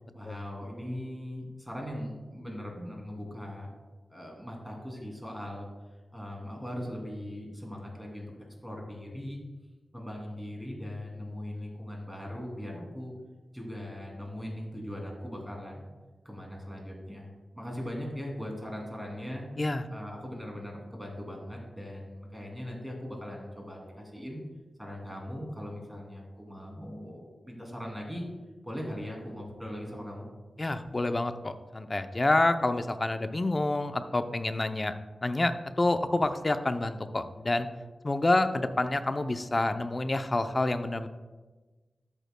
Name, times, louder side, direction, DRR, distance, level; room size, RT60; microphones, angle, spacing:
voice 1, 0.1-3.7 4.1-5.7 6.1-8.3 8.6-9.4 9.9-13.1 13.5-15.8 16.2-19.4 19.9-24.4 24.8-28.3 28.6-30.3, equal, 5° right, -1 dB, 2.6 m, -39 dB
voice 2, 30.6-34.9 35.2-37.7 38.0-41.1, left 2 dB, 30° left, 9 dB, 0.5 m, -28 dB
13.0 x 8.2 x 2.2 m, 1.3 s
wide cardioid pair, 80°, 0 cm